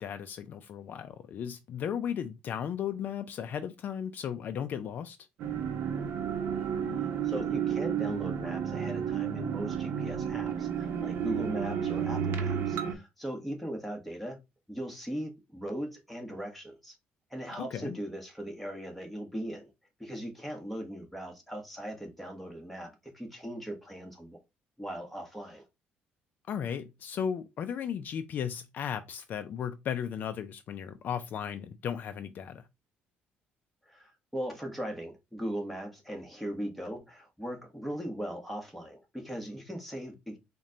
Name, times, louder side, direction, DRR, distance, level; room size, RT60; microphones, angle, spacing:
voice 1, 0.0-5.2 17.6-18.0 26.5-32.7, left 8 dB, 55° left, 0.3 m, -35 dB
sound 1, 5.4-12.9, right 8 dB, 75° right, 0.7 m, -32 dB
voice 2, 6.9-14.4 14.7-17.0 17.3-19.7 20.0-24.4 24.8-25.6 33.8-40.4, equal, ahead, 1.1 m, -39 dB
4.1 x 2.2 x 3.7 m
cardioid pair, 115°, 4 cm